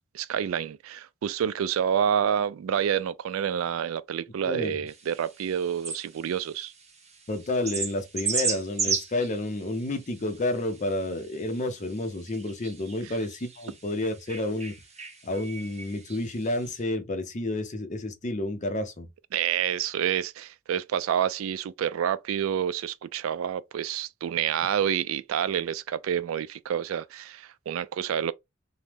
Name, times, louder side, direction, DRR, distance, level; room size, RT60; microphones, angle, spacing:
voice 1, 0.1-6.7 13.1-13.2 19.3-28.3, right 9 dB, 85° right, 0.3 m, -28 dB
voice 2, 4.5-4.8 7.3-14.7 15.2-19.1, left 2 dB, 35° left, 0.6 m, -30 dB
sound 1, 4.9-16.8, right 5 dB, 35° right, 0.7 m, -36 dB
2.9 x 2.1 x 3.3 m
head